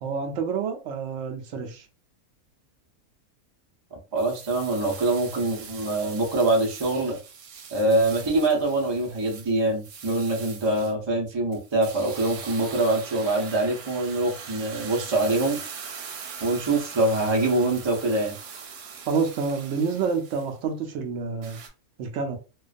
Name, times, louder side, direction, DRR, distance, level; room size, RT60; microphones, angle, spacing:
voice 1, 0.0-1.9 19.1-21.6 22.0-22.4, right 5 dB, 65° right, 0.7 m, -28 dB
voice 2, 4.1-7.2 7.7-15.6 16.4-18.3, right 2 dB, 35° right, 0.4 m, -24 dB
sound 1, 4.1-10.9 11.5-20.6 21.4-21.7, right 6 dB, 90° right, 1.1 m, -41 dB
2.4 x 2.2 x 2.4 m
omnidirectional pair, 1.5 m